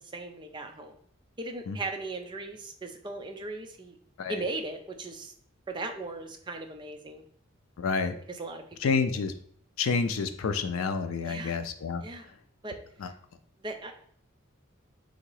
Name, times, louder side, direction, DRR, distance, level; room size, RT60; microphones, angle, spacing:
voice 1, 0.1-1.0 1.4-4.0 4.3-5.3 5.7-7.2 8.3-8.6 9.1-9.3 11.2-11.6 12.0-12.3 12.6-13.1 13.6-13.9, right 2 dB, 20° right, 4 dB, 0.5 m, -38 dB
voice 2, 7.8-8.1 8.8-9.3 9.8-12.0, left 5 dB, 85° left, 8 dB, 0.4 m, -28 dB
3.8 x 2.8 x 4.7 m, 0.63 s
head